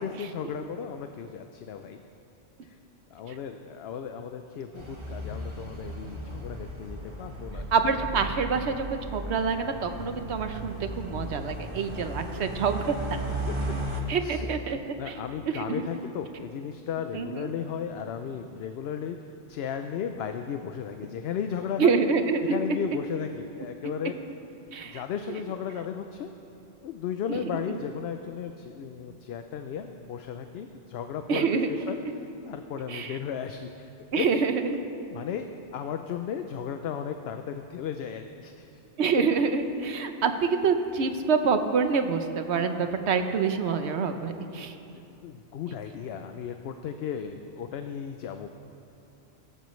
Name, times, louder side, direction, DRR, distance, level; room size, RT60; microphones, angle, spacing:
voice 1, 0.0-2.0 2.6-2.8 3.1-7.7 11.9-12.1 13.2-13.6 14.2-14.5 15.0-19.2 19.5-22.0 22.4-24.2 24.8-26.3 26.8-34.3 35.1-35.5 35.7-38.7 39.2-39.3 43.0-43.1 44.2-44.3 45.1-48.5, left 7 dB, 65° left, 7 dB, 0.8 m, -35 dB
sound 1, 4.8-14.0, right 1 dB, 25° right, 1.2 m, -36 dB
voice 2, 7.7-13.0 14.1-14.8 15.1-15.2 15.5-15.8 17.1-17.5 21.8-22.6 24.7-25.0 27.3-27.4 31.3-31.7 32.9-33.2 34.1-34.8 39.0-44.7, right 5 dB, 70° right, 8 dB, 1.0 m, -26 dB
16.5 x 14.5 x 3.1 m, 2.8 s
omnidirectional pair, 1.2 m